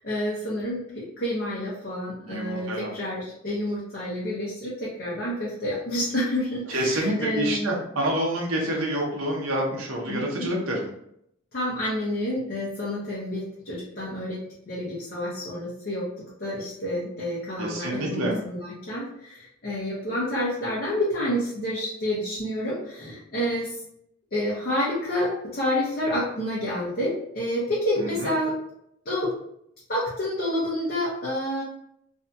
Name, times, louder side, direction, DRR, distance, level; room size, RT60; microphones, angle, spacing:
voice 1, 0.0-7.7 10.1-10.5 11.5-16.1 16.4-23.8 24.3-28.6 29.0-29.4 29.9-31.6, left 1 dB, 50° left, -7 dB, 0.8 m, -29 dB
voice 2, 2.2-2.9 6.7-10.9 17.6-18.4, right 1 dB, 80° right, -2 dB, 0.7 m, -27 dB
2.7 x 2.7 x 2.3 m, 0.74 s
head